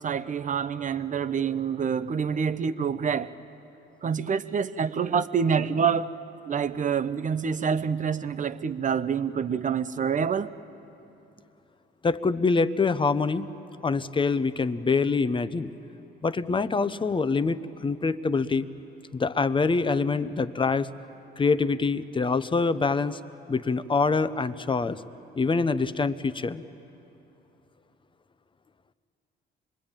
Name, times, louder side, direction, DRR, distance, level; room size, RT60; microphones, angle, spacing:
voice 1, 0.0-3.3 4.0-6.1 6.5-10.5, right 7 dB, 40° right, 0.7 m, -27 dB
voice 2, 12.0-13.5 13.8-15.7 16.2-18.7 19.1-20.9 21.4-23.2 23.5-25.0 25.3-26.6, left 4 dB, 25° left, 0.8 m, -25 dB
25.5 x 21.0 x 8.9 m
cardioid pair, 90°, 20 cm